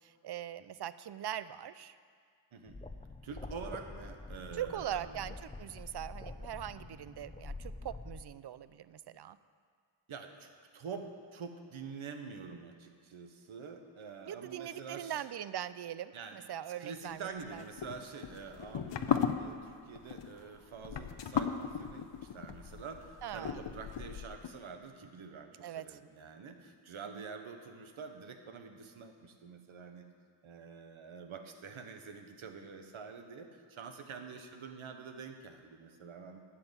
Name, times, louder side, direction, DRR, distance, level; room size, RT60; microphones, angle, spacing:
voice 1, 0.0-2.0 4.5-9.4 14.3-17.6 23.2-23.6 25.6-26.0 27.1-27.3, right 10 dB, 60° right, 15 dB, 0.5 m, -41 dB
sound 1, 2.7-8.2, left 2 dB, 15° left, 0.6 m, -46 dB
voice 2, 3.2-5.3 10.1-11.0 11.3-15.2 16.1-16.4 16.8-30.1 30.4-36.4, right 5 dB, 85° right, 6 dB, 1.0 m, -47 dB
sound 2, 17.5-24.5, left 8 dB, 65° left, 0.7 m, -36 dB
11.0 x 5.8 x 8.2 m, 2.1 s
cardioid pair, 55°, 47 cm